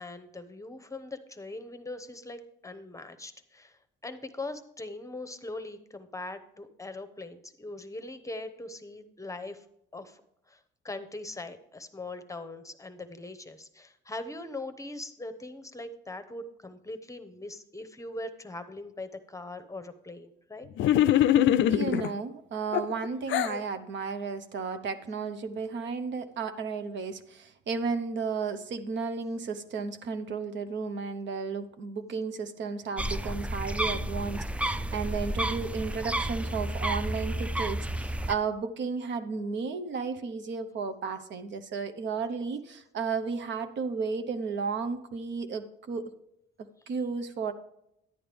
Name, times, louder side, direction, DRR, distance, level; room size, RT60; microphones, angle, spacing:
voice 1, 0.0-9.6 9.9-10.2 10.5-10.6 10.8-20.7, left 2 dB, 15° left, 10 dB, 0.8 m, -41 dB
sound 1, 20.8-22.1 22.7-23.6, left 11 dB, 75° left, 0.4 m, -23 dB
voice 2, 21.7-46.1 46.9-47.5, right 5 dB, 65° right, 9 dB, 0.8 m, -33 dB
sound 2, 33.0-38.3, right 1 dB, 5° right, 0.3 m, -31 dB
11.0 x 8.8 x 3.4 m, 0.79 s
cardioid pair, 90°, 20 cm